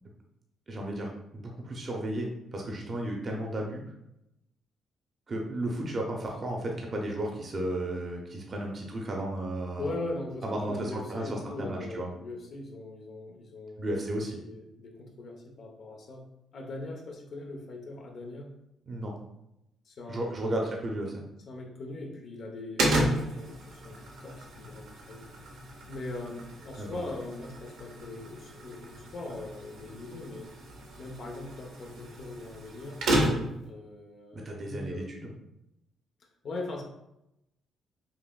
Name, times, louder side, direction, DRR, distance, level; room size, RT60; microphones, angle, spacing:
voice 1, 0.7-3.8 5.3-10.0 10.4-12.1 13.8-14.4 18.9-19.1 20.1-21.2 26.8-27.0 33.3-33.4 34.3-35.3, right 1 dB, 40° right, 0 dB, 0.7 m, -34 dB
voice 2, 9.8-16.2 16.5-18.5 19.9-20.7 21.5-25.3 25.9-30.5 31.0-33.0 33.6-35.1 36.4-36.8, left 2 dB, 60° left, 1 dB, 0.8 m, -41 dB
sound 1, 22.8-33.7, right 1 dB, 85° right, 0.8 m, -33 dB
5.5 x 2.5 x 2.3 m, 0.86 s
cardioid pair, 90°, 0 cm